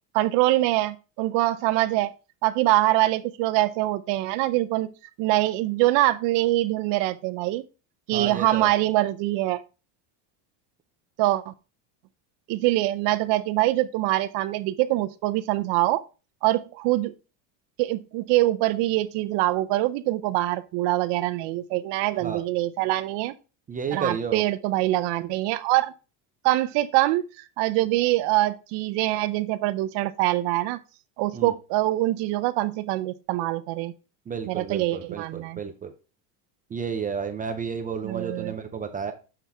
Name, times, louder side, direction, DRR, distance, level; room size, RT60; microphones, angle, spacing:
voice 1, 0.1-2.1 2.4-4.9 5.2-7.6 8.1-9.6 11.2-11.5 12.5-16.0 16.4-17.1 17.8-23.3 23.9-25.9 26.4-30.8 31.2-33.9 34.5-35.6 38.0-38.6, right 17 dB, 60° right, 0.7 m, -24 dB
voice 2, 8.1-8.7 22.2-22.4 23.7-24.4 31.3-31.5 34.3-35.9 36.7-39.1, right 6 dB, 20° right, 0.5 m, -32 dB
7.5 x 5.8 x 3.4 m
cardioid pair, 145°, 47 cm